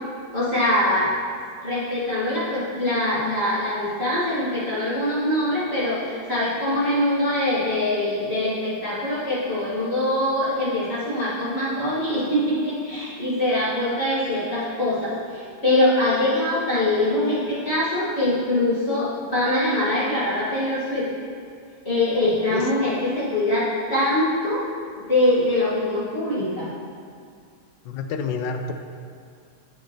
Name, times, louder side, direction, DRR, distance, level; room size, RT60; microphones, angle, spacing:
voice 1, 0.3-1.1 1.6-21.1 21.8-24.6 25.0-26.7, left 1 dB, 35° left, -11 dB, 2.1 m, -23 dB
voice 2, 27.8-28.7, left 5 dB, 90° left, 6 dB, 1.3 m, -28 dB
13.5 x 4.7 x 3.1 m, 2.2 s
omnidirectional pair, 1.9 m